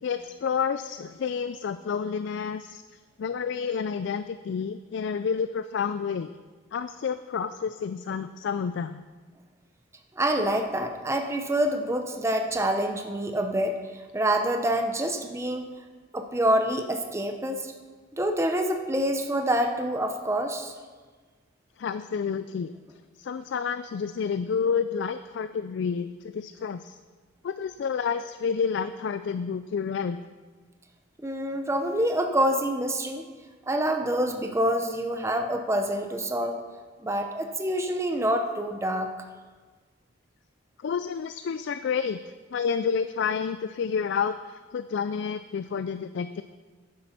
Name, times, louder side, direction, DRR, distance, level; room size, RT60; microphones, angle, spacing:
voice 1, 0.0-6.3 6.7-9.0 21.8-22.7 23.2-27.0 27.4-30.2 40.8-42.2 42.5-46.4, left 6 dB, 60° left, 11 dB, 0.3 m, -29 dB
voice 2, 10.1-15.7 16.1-17.7 18.1-20.7 31.2-33.2 33.7-36.6 37.0-39.1, right 1 dB, 15° right, 5 dB, 0.6 m, -26 dB
10.0 x 7.7 x 5.8 m, 1.4 s
head